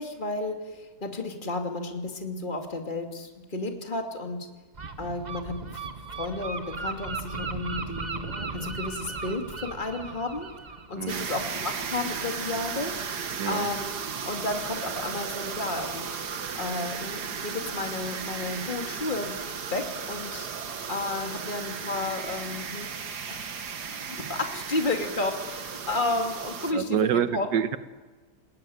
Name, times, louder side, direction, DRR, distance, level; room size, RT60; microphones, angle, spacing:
voice 1, 0.0-4.5 5.0-5.8 6.2-8.2 8.5-10.5 10.9-16.2 16.5-19.4 19.7-20.5 20.9-22.9 23.3-23.5 23.9-24.0 24.3-27.5, left 2 dB, 30° left, 4 dB, 2.6 m, -32 dB
Gull seagull, 4.7-12.3, right 4 dB, 30° right, 1.2 m, -37 dB
voice 2, 11.0-11.3 13.4-13.7 26.7-27.8, right 9 dB, 85° right, 11 dB, 1.7 m, -27 dB
sound 1, 11.1-26.7, right 6 dB, 70° right, 2.0 m, -35 dB
28.5 x 20.0 x 9.4 m, 1.3 s
omnidirectional pair, 1.8 m